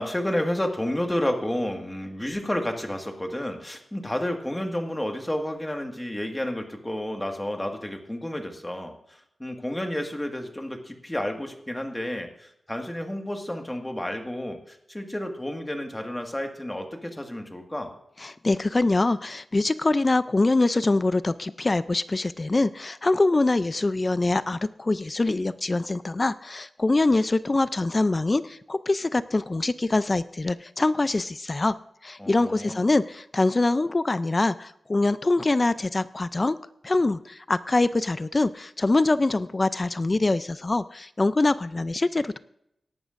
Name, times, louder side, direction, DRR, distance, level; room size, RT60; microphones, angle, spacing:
voice 1, 0.0-17.9 32.2-32.9, left 1 dB, 15° left, 4 dB, 1.7 m, -31 dB
voice 2, 18.2-31.7 32.0-36.6 36.8-42.4, left 2 dB, 30° left, 14 dB, 0.4 m, -24 dB
18.0 x 11.5 x 2.5 m, 0.77 s
wide cardioid pair, 90°, 0 cm